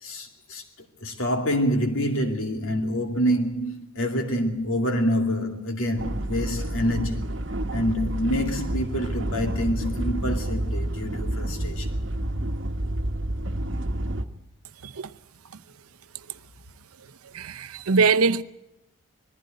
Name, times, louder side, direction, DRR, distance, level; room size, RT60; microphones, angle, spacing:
voice 1, 0.0-0.6 1.0-7.3 7.7-11.9, equal, 70° left, 2.6 m, -26 dB
sound 1, 6.0-14.2, right 1 dB, 55° right, 1.2 m, -29 dB
voice 2, 17.3-18.4, right 4 dB, 85° right, 0.8 m, -22 dB
21.0 x 15.0 x 9.2 m
head